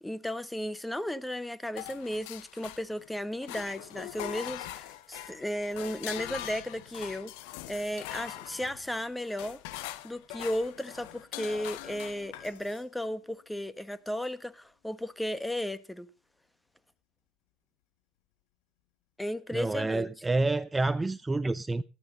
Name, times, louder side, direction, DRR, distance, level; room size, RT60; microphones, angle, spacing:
voice 1, 0.0-7.3 7.7-9.6 10.0-16.1 19.2-20.1, left 1 dB, 5° left, 1.4 m, -35 dB
sound 1, 1.8-3.1 3.4-12.8, left 14 dB, 70° left, 1.2 m, -42 dB
voice 2, 19.5-21.8, right 2 dB, 15° right, 0.7 m, -28 dB
17.5 x 12.5 x 4.0 m
hypercardioid pair, 75°, 0 cm